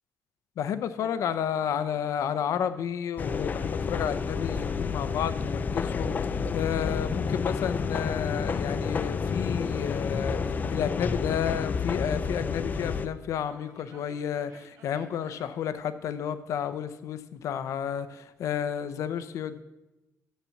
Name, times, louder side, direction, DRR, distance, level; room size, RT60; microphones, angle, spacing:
voice 1, 0.6-19.6, left 9 dB, 75° left, 13 dB, 0.6 m, -31 dB
sound 1, 1.0-2.7 3.3-3.9 4.3-5.6 6.8-8.0 8.3-12.9 13.5-15.6, right 4 dB, 80° right, 1.4 m, -53 dB
sound 2, 3.2-13.1, left 5 dB, 35° left, 0.4 m, -30 dB
7.3 x 6.7 x 7.0 m, 1.0 s
cardioid pair, 130°, 5 cm